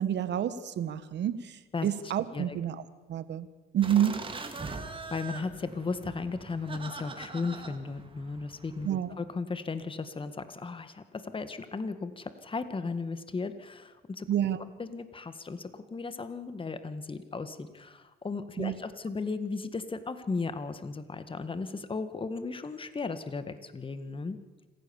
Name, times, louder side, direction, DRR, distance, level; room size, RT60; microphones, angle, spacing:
voice 1, 0.0-2.8 3.1-3.5 3.7-4.2 8.8-9.1 14.3-14.6 18.6-18.7, right 10 dB, 65° right, 13 dB, 1.5 m, -29 dB
sound 1, 3.8-9.0, right 3 dB, 25° right, 2.6 m, -42 dB
voice 2, 5.1-8.9 9.2-14.3 14.6-24.4, left 4 dB, 25° left, 11 dB, 1.8 m, -36 dB
26.5 x 15.5 x 7.2 m, 1.3 s
cardioid pair, 90°, 20 cm